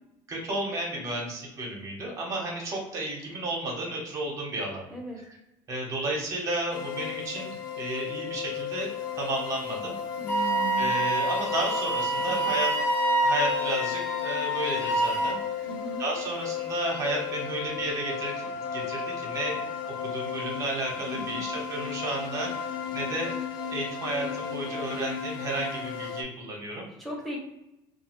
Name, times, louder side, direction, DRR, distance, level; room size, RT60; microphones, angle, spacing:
voice 1, 0.3-4.8 5.2-5.3 5.7-9.9 10.4-12.7 13.2-15.4 16.0-19.6 20.0-23.4 23.6-26.8, right 2 dB, 40° right, -1 dB, 0.9 m, -32 dB
voice 2, 4.9-5.2 10.2-11.0 12.1-12.5 15.6-16.0 21.1-21.4 27.0-27.4, left 1 dB, ahead, -3 dB, 0.9 m, -37 dB
sound 1, 6.7-26.2, left 8 dB, 55° left, 0.4 m, -34 dB
Wind instrument woodwind instrument, 10.3-15.4, right 2 dB, 25° left, 0.7 m, -27 dB
2.6 x 2.3 x 3.0 m, 0.88 s
cardioid pair, 120°, 9 cm